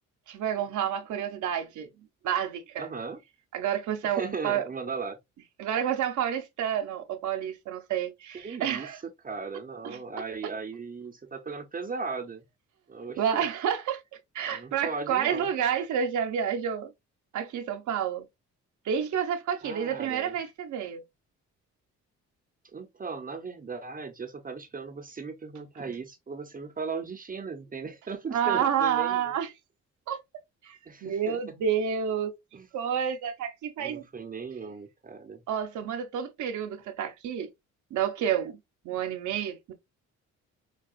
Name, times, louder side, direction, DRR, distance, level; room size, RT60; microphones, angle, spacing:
voice 1, 0.3-1.9 2.2-2.9 3.5-4.6 5.6-9.0 9.8-10.0 13.2-14.0 14.3-16.9 17.3-18.3 18.8-21.0 28.3-29.5 30.1-30.2 30.6-32.3 32.7-34.0 35.5-37.5 37.9-38.6 38.8-39.7, right 8 dB, 75° right, 0.7 m, -29 dB
voice 2, 2.8-3.2 4.0-5.2 8.3-8.9 9.2-12.4 12.9-13.5 14.5-15.5 19.6-20.3 22.7-29.3 30.9-31.6 32.5-32.7 33.8-35.5, right 4 dB, 30° right, 0.7 m, -37 dB
4.6 x 2.3 x 2.4 m
cardioid pair, 90°, 30 cm